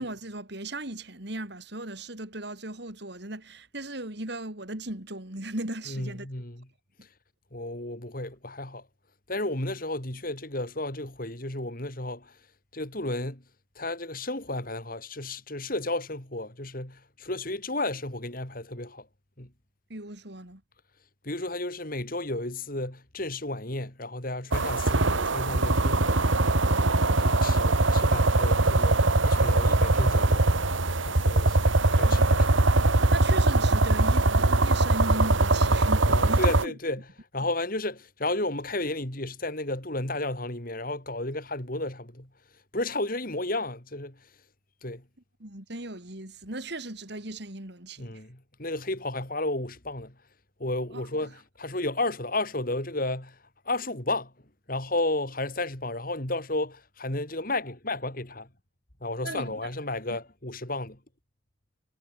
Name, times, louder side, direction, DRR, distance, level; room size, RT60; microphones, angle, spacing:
voice 1, 0.0-6.3 19.9-20.6 32.0-32.7 33.1-36.7 45.4-48.2 50.9-51.0 59.2-59.7 60.1-60.2, right 1 dB, 55° right, 3.9 m, -37 dB
voice 2, 5.9-6.7 7.5-8.8 9.3-12.3 12.7-13.4 13.8-19.1 19.4-19.5 21.2-26.2 26.9-30.5 31.1-31.6 31.9-32.5 35.6-35.7 36.1-37.1 37.3-42.3 42.7-44.2 44.8-45.0 48.0-50.1 50.6-53.4 53.7-54.3 54.7-58.5 59.0-61.0, left 2 dB, 45° left, 3.9 m, -32 dB
sound 1, 24.5-36.7, right 2 dB, 75° right, 1.8 m, -22 dB
head